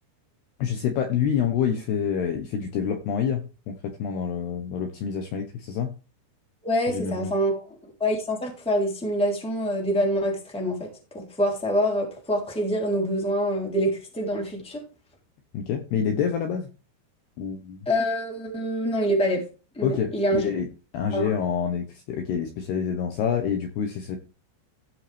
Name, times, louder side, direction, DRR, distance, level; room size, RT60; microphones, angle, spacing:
voice 1, 0.6-5.9 6.9-7.3 15.5-16.7 17.4-17.9 19.8-20.7 20.9-24.2, left 7 dB, 70° left, 4 dB, 2.8 m, -27 dB
voice 2, 6.6-7.7 8.0-14.8 17.8-19.4 19.7-20.5 21.1-21.3, equal, ahead, -1 dB, 2.5 m, -25 dB
15.5 x 5.7 x 3.5 m, 0.32 s
omnidirectional pair, 5.8 m